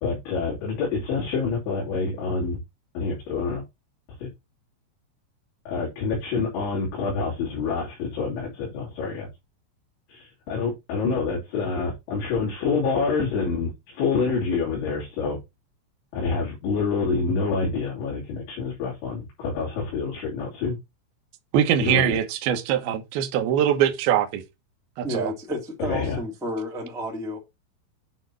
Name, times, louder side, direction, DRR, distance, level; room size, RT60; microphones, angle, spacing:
voice 1, 0.0-2.6 2.9-3.6 4.2-4.3 5.7-9.3 10.1-15.4 16.1-20.8 21.8-22.2 25.9-26.2, left 4 dB, 65° left, 5.0 m, -27 dB
voice 2, 21.5-24.4 25.0-25.3, right 9 dB, 75° right, 2.3 m, -22 dB
voice 3, 25.0-27.4, equal, 5° right, 0.6 m, -31 dB
9.2 x 4.6 x 4.6 m
omnidirectional pair, 5.9 m